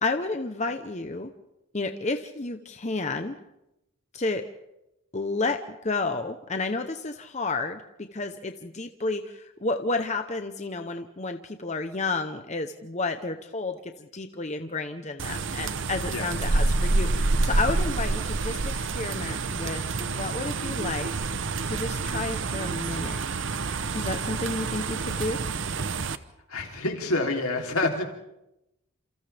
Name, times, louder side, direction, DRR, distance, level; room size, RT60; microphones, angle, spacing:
voice 1, 0.0-1.3 1.7-3.4 4.1-4.4 5.1-21.1 21.7-23.2 23.9-25.4, left 3 dB, 30° left, 7 dB, 0.9 m, -31 dB
sound 1, 15.2-26.2, right 3 dB, 60° right, 0.8 m, -28 dB
voice 2, 26.5-28.0, left 2 dB, 80° left, 2 dB, 3.4 m, -27 dB
29.5 x 28.0 x 3.5 m, 0.89 s
head